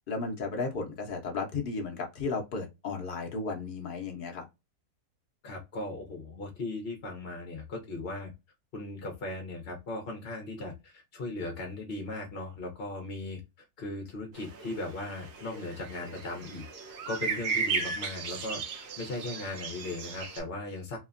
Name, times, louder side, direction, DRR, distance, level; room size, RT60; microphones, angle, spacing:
voice 1, 0.1-4.5, left 4 dB, 80° left, 0.4 m, -34 dB
voice 2, 5.4-8.3 8.7-13.4 13.8-16.7 17.1-18.6 19.0-21.0, left 2 dB, 50° left, 0.8 m, -38 dB
sound 1, 14.3-20.4, right 5 dB, 85° right, 1.3 m, -36 dB
3.2 x 2.1 x 2.4 m
omnidirectional pair, 1.7 m